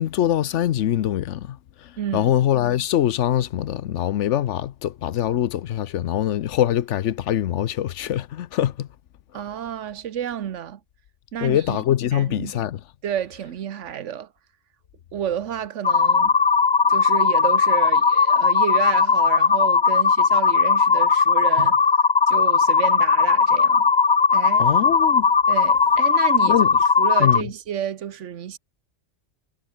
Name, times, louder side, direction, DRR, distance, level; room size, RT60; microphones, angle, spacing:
voice 1, 0.0-8.9 11.4-12.8 24.6-25.3 26.5-26.7 27.2-27.5, left 11 dB, 80° left, 1.0 m, -23 dB
voice 2, 2.0-2.3 9.3-10.8 11.3-11.8 12.1-12.6 13.0-14.3 15.1-16.4 16.9-21.8 22.3-23.9 24.3-24.7 25.5-26.6 27.0-28.6, right 9 dB, 85° right, 1.2 m, -30 dB
sound 1, 15.8-27.4, left 5 dB, 35° left, 0.5 m, -18 dB
omnidirectional pair, 1.2 m